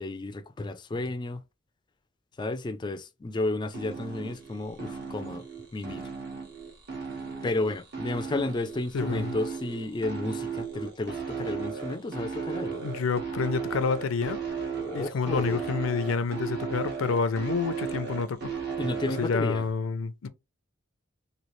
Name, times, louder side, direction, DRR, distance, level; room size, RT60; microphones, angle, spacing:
voice 1, 0.0-1.4 2.4-5.5 5.7-6.1 7.4-12.8 14.8-15.6 18.8-19.7, left 2 dB, 25° left, 0.3 m, -32 dB
sound 1, 3.7-19.3, right 6 dB, 55° right, 1.2 m, -35 dB
voice 2, 8.9-9.3 12.8-14.4 14.9-18.5 19.2-20.3, left 4 dB, 90° left, 0.4 m, -28 dB
3.1 x 2.7 x 3.0 m
head